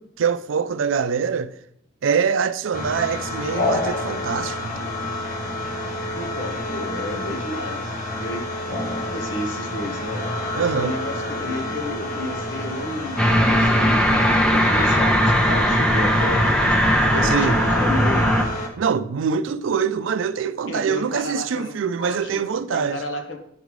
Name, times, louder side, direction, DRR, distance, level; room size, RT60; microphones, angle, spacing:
voice 1, 0.0-1.5 2.0-4.8 10.6-10.9 17.2-17.6 18.8-23.0, right 6 dB, 85° right, 0.4 m, -24 dB
sound 1, 2.7-18.7, left 2 dB, 40° left, 0.9 m, -29 dB
voice 2, 6.2-8.4 9.1-10.2 10.7-16.7 17.1-18.3 20.7-23.4, left 1 dB, 75° left, 1.0 m, -32 dB
sound 2, 13.2-18.4, equal, 5° left, 0.6 m, -18 dB
10.5 x 5.2 x 3.1 m
head